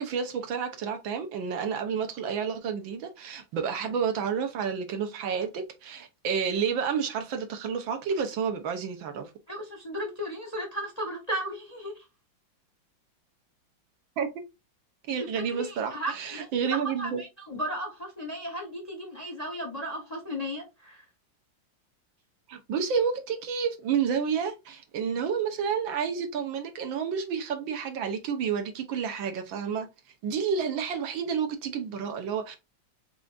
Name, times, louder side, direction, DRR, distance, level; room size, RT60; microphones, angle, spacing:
voice 1, 0.0-9.3 14.2-14.3 15.1-17.2 22.5-29.9 30.2-32.6, right 6 dB, 75° right, 1.7 m, -30 dB
voice 2, 9.5-11.9 15.2-15.3 15.6-21.0, equal, 30° left, 0.7 m, -35 dB
4.7 x 3.9 x 2.5 m
omnidirectional pair, 2.2 m